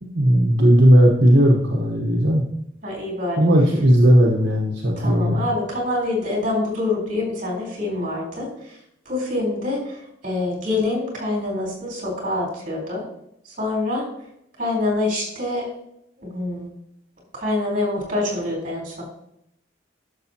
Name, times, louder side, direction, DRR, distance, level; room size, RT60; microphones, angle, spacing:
voice 1, 0.0-2.4 3.4-5.4, equal, 65° right, -1 dB, 1.1 m, -16 dB
voice 2, 2.8-3.4 5.0-8.8 9.1-13.0 13.4-14.1 14.6-15.7 16.2-16.7 17.3-19.0, left 2 dB, 45° right, -3 dB, 3.7 m, -26 dB
11.5 x 6.8 x 2.9 m, 0.77 s
head